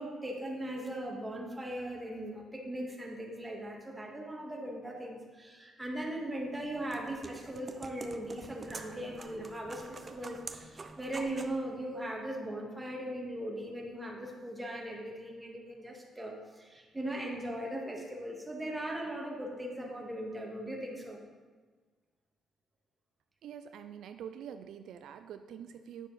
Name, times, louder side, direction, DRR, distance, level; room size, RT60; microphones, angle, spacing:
voice 1, 0.0-21.2, right 1 dB, 15° right, -1 dB, 1.9 m, -39 dB
sound 1, 6.4-11.6, right 3 dB, 30° right, 0.6 m, -47 dB
voice 2, 23.4-26.1, right 8 dB, 75° right, 8 dB, 0.4 m, -45 dB
9.8 x 6.3 x 4.1 m, 1.4 s
cardioid pair, 90°, 0 cm